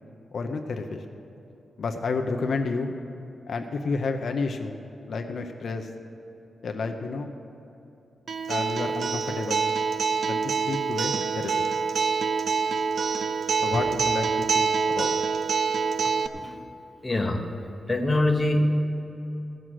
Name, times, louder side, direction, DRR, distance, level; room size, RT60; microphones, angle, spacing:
voice 1, 0.3-1.0 1.8-2.9 3.5-4.8 5.1-5.9 6.6-7.3 8.5-9.6 10.2-11.7 13.6-15.1, left 4 dB, 60° left, 4 dB, 0.7 m, -30 dB
Acoustic guitar, 8.3-16.3, right 5 dB, 65° right, 0.5 m, -26 dB
voice 2, 17.0-17.5 17.9-18.7, left 2 dB, 15° left, 2 dB, 1.0 m, -24 dB
15.5 x 6.3 x 7.6 m, 2.8 s
wide cardioid pair, 145°, 0 cm